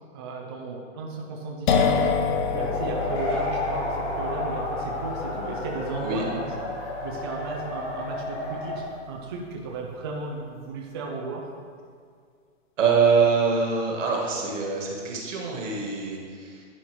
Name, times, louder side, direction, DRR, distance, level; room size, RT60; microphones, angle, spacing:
voice 1, 0.1-2.1 2.5-6.7 7.0-11.5, right 3 dB, 20° right, -1 dB, 0.4 m, -35 dB
sound 1, 1.7-9.2, left 5 dB, 40° left, 0.6 m, -29 dB
sound 2, 2.3-8.8, left 1 dB, 55° left, 1.6 m, -32 dB
voice 2, 12.8-16.6, right 5 dB, 70° right, -1 dB, 1.8 m, -24 dB
11.0 x 4.2 x 3.1 m, 2.1 s
hypercardioid pair, 140°, 39 cm